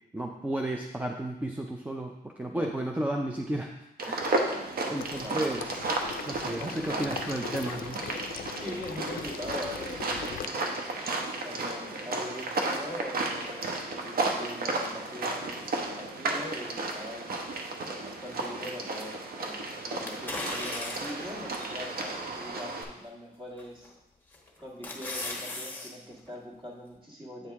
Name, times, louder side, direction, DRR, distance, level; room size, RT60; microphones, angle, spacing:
voice 1, 0.1-3.7 4.0-4.3 4.9-5.8 6.3-8.0, right 1 dB, 10° right, 1 dB, 0.4 m, -33 dB
sound 1, 4.0-22.8, right 2 dB, 65° right, 0.9 m, -33 dB
Water / Liquid, 5.0-10.5, left 9 dB, 60° left, 0.4 m, -41 dB
voice 2, 6.5-7.2 8.5-10.9 11.4-17.5 18.0-23.9 24.6-27.5, left 1 dB, 30° right, -2 dB, 1.7 m, -42 dB
sound 2, 20.1-21.3 21.9-22.0 23.6-23.9 24.3-25.9 26.3-26.4, left 2 dB, 10° left, 1.1 m, -36 dB
8.3 x 4.7 x 3.5 m, 0.90 s
wide cardioid pair, 135°, 17 cm